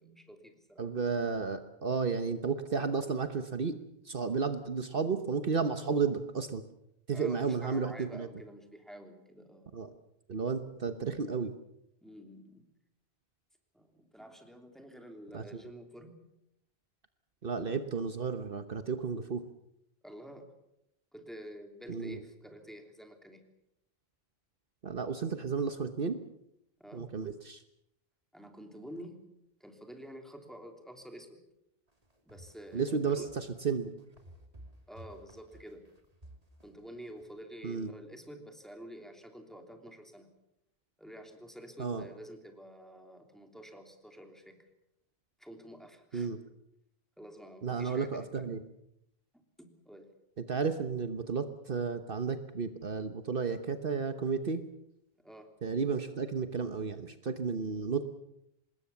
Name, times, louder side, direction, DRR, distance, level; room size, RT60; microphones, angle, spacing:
voice 1, 0.0-0.8 7.1-9.8 12.0-12.7 13.7-16.2 20.0-20.5 21.1-23.4 26.8-27.1 28.3-29.2 29.6-31.4 32.2-33.3 34.9-35.9 36.6-40.3 41.0-44.6 45.4-46.3 47.2-48.5 49.3-50.1 55.2-55.5, equal, ahead, 4 dB, 3.2 m, -49 dB
voice 2, 0.8-3.7 4.0-6.6 7.1-8.3 9.7-9.9 10.3-11.5 15.3-15.6 17.4-19.4 21.9-22.2 24.8-26.2 26.9-27.6 32.7-33.9 37.6-37.9 41.8-42.0 46.1-46.4 47.6-48.6 50.5-54.6 55.6-58.0, right 5 dB, 60° right, 9 dB, 1.3 m, -33 dB
sound 1, 31.9-37.2, right 1 dB, 35° right, 3.1 m, -54 dB
25.5 x 20.5 x 7.2 m, 0.81 s
omnidirectional pair, 1.1 m